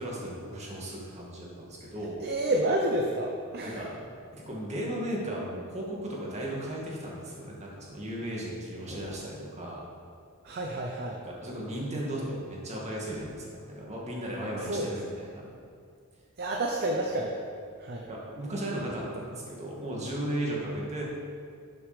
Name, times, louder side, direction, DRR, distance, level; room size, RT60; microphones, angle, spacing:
voice 1, 0.0-2.2 3.6-3.9 4.3-9.8 11.2-15.4 18.0-21.0, right 1 dB, 30° right, -4 dB, 2.3 m, -35 dB
voice 2, 2.2-3.8 10.4-11.2 14.7-14.9 16.4-17.4 17.8-18.1, right 1 dB, 45° right, 0 dB, 0.8 m, -29 dB
11.5 x 6.9 x 5.2 m, 2.3 s
head